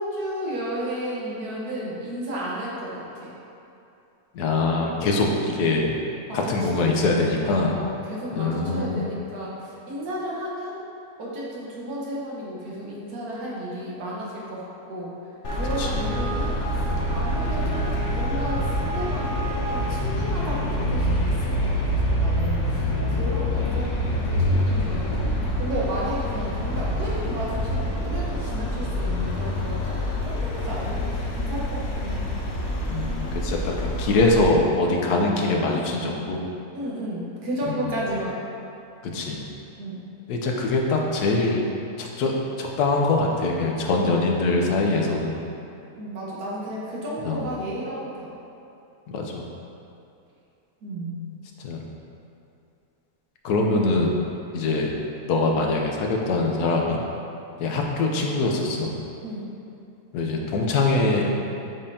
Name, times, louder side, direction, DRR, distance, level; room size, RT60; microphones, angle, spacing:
voice 1, 0.0-3.3 6.3-7.1 7.4-10.8 11.2-15.1 15.5-25.3 25.6-32.2 36.7-38.4 39.8-40.1 45.9-48.3 50.8-51.3 59.2-59.5, right 1 dB, 75° right, -5 dB, 1.7 m, -33 dB
voice 2, 4.3-6.0 6.3-7.8 8.3-9.1 15.8-16.1 22.7-23.5 32.9-36.4 37.6-38.1 39.1-39.4 40.3-41.7 42.0-45.4 47.2-47.5 49.1-49.5 51.6-51.8 53.4-54.1 54.5-54.9 55.3-57.0 57.6-59.0 60.1-61.3, left 3 dB, 85° left, 0 dB, 1.3 m, -23 dB
Traffic noise roadway noise, 15.4-34.4, equal, 55° left, 1.0 m, -26 dB
7.3 x 5.2 x 2.7 m, 2.7 s
omnidirectional pair, 1.6 m